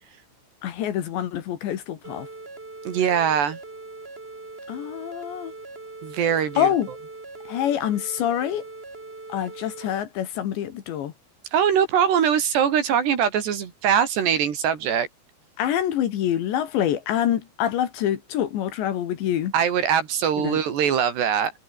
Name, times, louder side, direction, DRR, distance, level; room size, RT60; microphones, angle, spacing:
voice 1, 0.6-2.3 4.7-5.5 6.6-6.9 7.5-8.6 9.3-11.1 15.6-19.5 20.4-20.6, left 10 dB, 65° left, 3.9 m, -26 dB
sound 1, 2.0-10.0, right 3 dB, 20° right, 1.6 m, -41 dB
voice 2, 2.9-3.6 6.0-6.7 11.5-15.1 19.5-21.5, right 8 dB, 60° right, 4.5 m, -22 dB
omnidirectional pair, 5.9 m